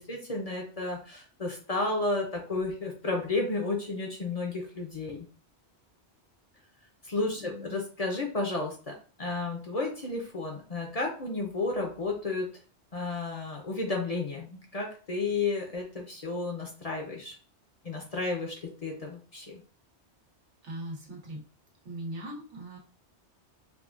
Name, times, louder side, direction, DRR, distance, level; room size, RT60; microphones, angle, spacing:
voice 1, 0.0-5.3 7.0-12.5 12.9-17.4 17.8-18.6 18.8-19.6, left 3 dB, 40° left, 1 dB, 0.7 m, -32 dB
voice 2, 7.3-7.8 20.6-21.4 21.8-22.8, right 1 dB, 85° right, -1 dB, 1.4 m, -40 dB
4.8 x 2.2 x 2.4 m, 0.38 s
omnidirectional pair, 1.2 m